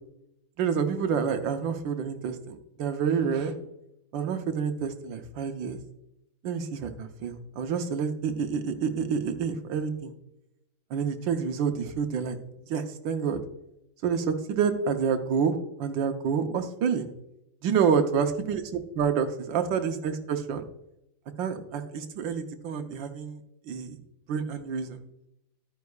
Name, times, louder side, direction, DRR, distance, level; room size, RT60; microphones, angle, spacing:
voice 1, 0.6-3.5 4.1-5.8 6.4-10.1 10.9-12.4 12.7-13.4 14.0-17.1 17.6-18.6 19.0-20.6 21.4-23.4 23.7-24.0 24.3-25.0, right 6 dB, 85° right, 7 dB, 1.6 m, -28 dB
13.0 x 9.4 x 2.3 m, 0.86 s
omnidirectional pair, 2.0 m